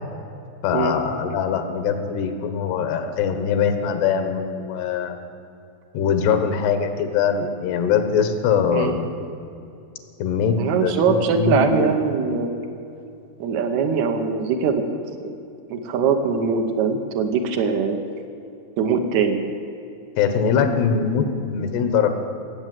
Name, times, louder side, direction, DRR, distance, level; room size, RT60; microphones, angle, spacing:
voice 1, 0.6-5.3 5.9-9.1 10.2-11.9 20.2-22.1, left 6 dB, 90° left, 8 dB, 3.2 m, -22 dB
voice 2, 10.6-12.6 13.4-14.8 15.2-15.4 15.7-18.0 18.8-19.4, right 5 dB, 75° right, 4 dB, 1.7 m, -22 dB
17.5 x 7.8 x 7.7 m, 2.6 s
omnidirectional pair, 4.6 m